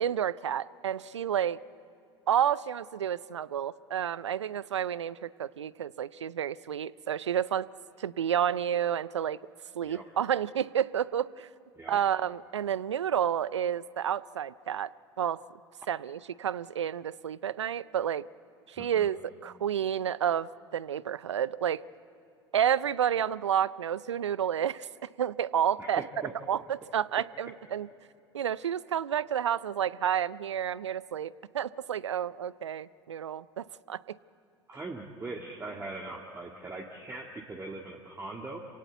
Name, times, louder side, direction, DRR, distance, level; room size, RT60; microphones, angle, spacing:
voice 1, 0.0-1.6 2.3-7.7 8.0-9.4 9.7-11.5 11.9-14.9 15.2-15.4 15.9-18.3 18.7-21.8 22.5-26.0 26.5-27.9 28.3-34.2, right 9 dB, 85° right, 20 dB, 0.4 m, -30 dB
voice 2, 18.8-19.1 25.8-26.3 34.7-38.6, right 2 dB, 15° right, 0 dB, 1.8 m, -41 dB
27.0 x 17.5 x 8.1 m, 2.7 s
hypercardioid pair, 80°, 15 cm